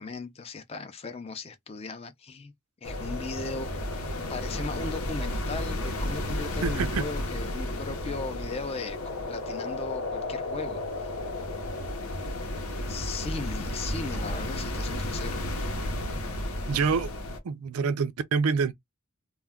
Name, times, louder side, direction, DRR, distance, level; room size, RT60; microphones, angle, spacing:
voice 1, 0.0-2.5 2.8-3.7 4.3-9.0 9.3-11.1 12.8-15.5, left 3 dB, 25° left, 0.4 m, -37 dB
sound 1, 2.8-17.4, left 1 dB, 80° left, 0.8 m, -33 dB
voice 2, 6.6-7.1 16.7-17.1 17.4-18.7, right 5 dB, 80° right, 0.4 m, -26 dB
2.2 x 2.1 x 3.4 m
head